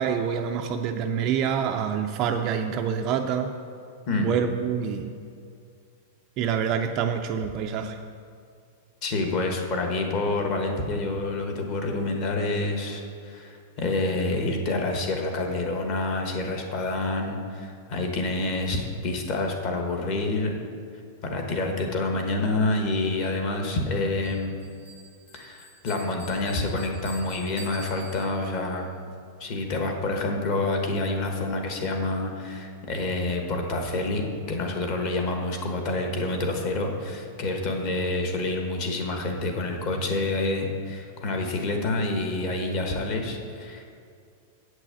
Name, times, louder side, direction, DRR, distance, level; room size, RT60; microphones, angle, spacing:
voice 1, 0.0-3.5 4.2-5.1 6.4-8.0, right 7 dB, 25° right, 4 dB, 0.4 m, -26 dB
voice 2, 9.0-20.6 21.2-24.6 25.3-28.8 29.4-43.9, left 2 dB, 30° left, 3 dB, 1.2 m, -28 dB
Bell, 24.2-28.7, right 1 dB, 70° left, 2.9 m, -47 dB
8.5 x 6.2 x 7.6 m, 2.4 s
supercardioid pair, 180°, 0 cm